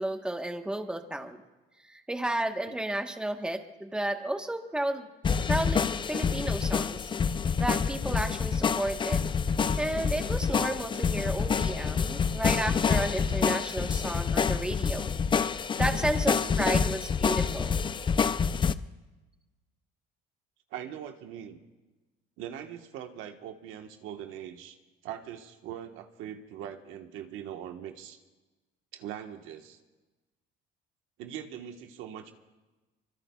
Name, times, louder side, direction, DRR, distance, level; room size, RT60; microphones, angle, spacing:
voice 1, 0.0-1.4 1.9-5.1 5.5-5.8 6.1-7.0 7.6-9.3 9.8-15.1 15.8-17.8, right 1 dB, 5° right, 5 dB, 1.2 m, -32 dB
sound 1, 5.2-18.7, left 6 dB, 25° left, 0.5 m, -27 dB
voice 2, 16.2-16.6 20.7-21.6 22.4-24.8 25.0-28.2 28.9-29.8 31.2-32.3, right 10 dB, 75° right, 5 dB, 1.4 m, -41 dB
24.5 x 24.0 x 2.4 m, 1.2 s
cardioid pair, 115°, 21 cm